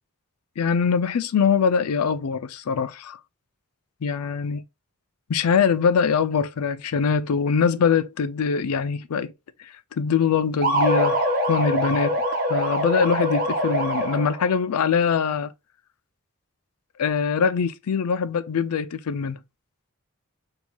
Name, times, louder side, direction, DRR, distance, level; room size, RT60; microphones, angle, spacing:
voice 1, 0.6-3.2 4.0-4.6 5.3-9.3 9.9-12.2 12.5-15.5 17.0-19.4, left 6 dB, 75° left, 0.4 m, -23 dB
sound 1, 10.6-14.5, equal, 45° right, 1.2 m, -23 dB
4.4 x 2.8 x 2.2 m
head